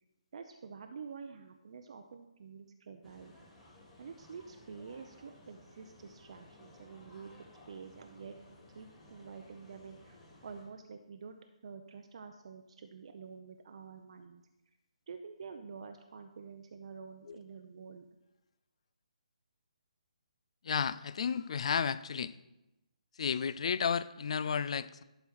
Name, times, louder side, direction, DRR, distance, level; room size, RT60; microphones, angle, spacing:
voice 1, 0.3-3.3 4.0-11.4 11.6-14.4 15.1-18.1, right 5 dB, 55° right, 6 dB, 0.6 m, -48 dB
sound 1, 3.0-10.6, left 1 dB, 10° left, 2.1 m, -58 dB
voice 2, 20.6-22.3 23.2-25.0, left 6 dB, 55° left, 15 dB, 0.4 m, -32 dB
11.5 x 4.5 x 4.4 m, 0.97 s
figure-of-eight pair, 150°, 4 cm